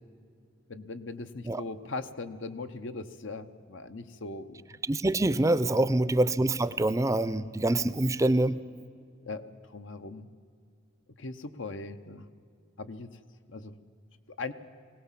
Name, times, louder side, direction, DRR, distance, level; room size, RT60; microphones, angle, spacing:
voice 1, 0.7-4.6 5.7-5.9 9.2-9.4 9.7-10.3 11.2-12.2 12.8-13.1 13.5-13.7 14.4-14.5, left 3 dB, 85° left, 9 dB, 0.9 m, -39 dB
voice 2, 4.8-8.6, right 2 dB, 15° right, 15 dB, 0.5 m, -25 dB
20.5 x 17.5 x 7.4 m, 2.3 s
head